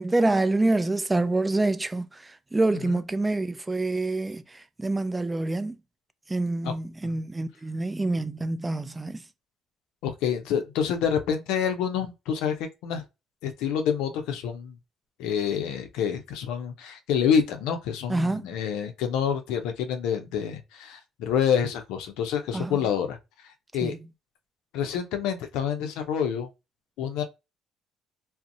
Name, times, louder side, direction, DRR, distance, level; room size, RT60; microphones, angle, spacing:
voice 1, 0.0-5.8 6.3-9.2 18.1-18.5 22.5-22.8 23.8-24.0, right 2 dB, 15° right, 0.3 m, -26 dB
voice 2, 10.0-12.6 12.8-13.0 13.4-14.8 15.2-23.2 23.7-23.9 24.7-26.5 27.0-27.2, left 8 dB, 80° left, 0.5 m, -27 dB
2.6 x 2.0 x 2.5 m
supercardioid pair, 70°, 0 cm